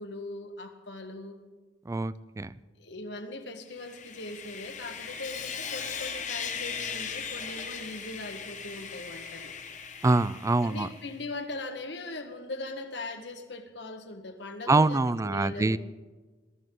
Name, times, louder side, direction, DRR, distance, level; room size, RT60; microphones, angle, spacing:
voice 1, 0.0-1.4 2.8-9.5 10.6-15.8, left 2 dB, 75° left, 6 dB, 1.5 m, -40 dB
voice 2, 1.9-2.5 10.0-10.9 14.7-15.8, right 3 dB, 15° right, 18 dB, 0.4 m, -24 dB
Sawing, 3.7-11.2, left 6 dB, 45° left, 1.3 m, -38 dB
22.0 x 13.5 x 3.8 m, 1.3 s
head